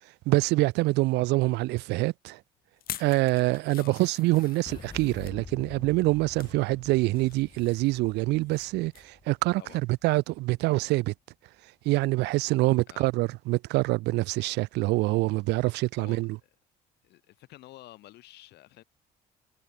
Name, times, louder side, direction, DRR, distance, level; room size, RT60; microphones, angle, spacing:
voice 1, 0.3-2.4 3.0-9.6 10.0-11.1 11.8-16.4, right 21 dB, 90° right, 1.5 m, -25 dB
sound 1, 2.8-5.4 6.0-6.6 7.0-8.7 8.9-9.2 9.6-9.7, left 12 dB, 60° left, 1.8 m, -45 dB
Boom, 4.7-10.5, left 5 dB, 25° left, 3.4 m, -48 dB
voice 2, 15.6-16.5 17.0-18.8, left 17 dB, 80° left, 5.1 m, -50 dB
cardioid pair, 110°, 17 cm